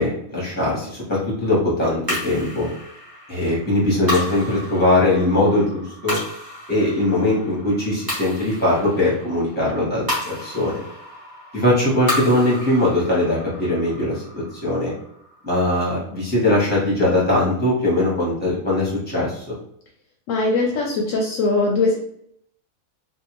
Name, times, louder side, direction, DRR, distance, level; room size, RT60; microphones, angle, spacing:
voice 1, 0.0-2.7 3.3-6.2 6.7-10.8 11.5-14.2 14.6-14.9 15.4-19.4, left 1 dB, 10° left, -6 dB, 1.0 m, -20 dB
sound 1, 2.1-16.6, left 1 dB, 15° right, 1.1 m, -33 dB
voice 2, 20.3-22.0, left 3 dB, 70° left, -1 dB, 0.9 m, -20 dB
2.7 x 2.4 x 2.9 m, 0.70 s
omnidirectional pair, 1.5 m